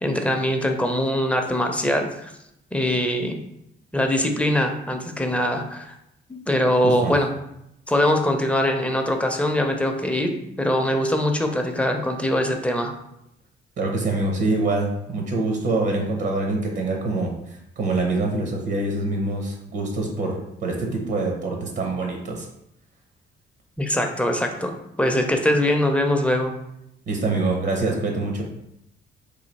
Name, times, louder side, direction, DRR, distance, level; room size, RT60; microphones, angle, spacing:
voice 1, 0.0-2.3 2.7-3.4 3.9-5.9 6.3-7.3 7.9-12.9 23.8-26.5, left 1 dB, 5° left, 3 dB, 0.5 m, -22 dB
voice 2, 6.8-7.1 13.8-22.5 27.1-28.4, right 2 dB, 60° right, 1 dB, 0.8 m, -25 dB
3.2 x 2.7 x 4.0 m, 0.81 s
cardioid pair, 90°, 20 cm